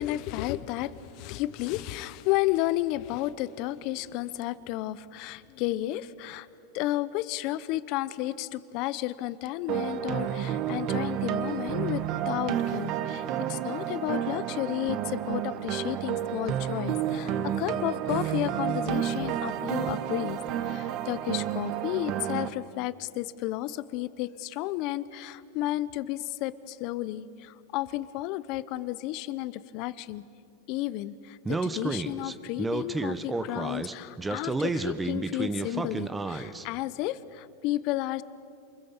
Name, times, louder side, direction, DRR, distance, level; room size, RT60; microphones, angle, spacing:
voice 1, 0.0-6.5 6.7-30.2 30.7-38.2, left 15 dB, 55° left, 17 dB, 0.9 m, -32 dB
sound 1, 9.7-22.5, right 10 dB, 50° right, 1.2 m, -30 dB
Speech, 31.4-36.6, right 3 dB, 15° right, 1.1 m, -31 dB
28.5 x 21.5 x 7.4 m, 2.5 s
hypercardioid pair, 115°, 0 cm